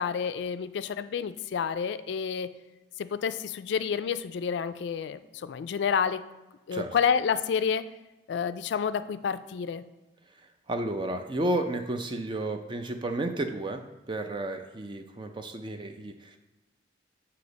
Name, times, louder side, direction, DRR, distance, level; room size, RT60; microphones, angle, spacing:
voice 1, 0.0-2.5 3.0-6.3 6.7-7.9 8.3-9.8, left 6 dB, 75° left, 13 dB, 0.3 m, -29 dB
voice 2, 10.3-16.4, right 1 dB, 25° right, 6 dB, 0.4 m, -32 dB
7.8 x 2.9 x 5.2 m, 1.1 s
head